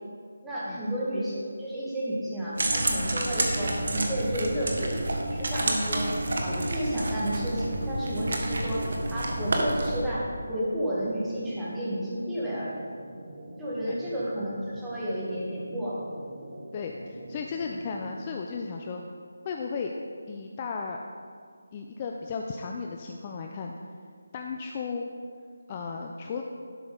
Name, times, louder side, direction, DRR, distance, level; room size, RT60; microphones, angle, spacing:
voice 1, 0.4-5.0 5.3-6.1 6.4-12.8 13.6-16.1, equal, 5° right, -9 dB, 1.6 m, -31 dB
sound 1, 2.6-10.0, right 1 dB, 60° right, 1.2 m, -29 dB
sound 2, 3.3-18.4, right 1 dB, 35° right, 1.2 m, -44 dB
voice 2, 16.7-19.1 19.4-19.9 20.3-21.0 21.7-23.7 24.3-25.1 25.7-26.4, left 5 dB, 25° left, 2 dB, 0.4 m, -35 dB
11.0 x 6.0 x 3.9 m, 2.1 s
figure-of-eight pair, 165°, 0 cm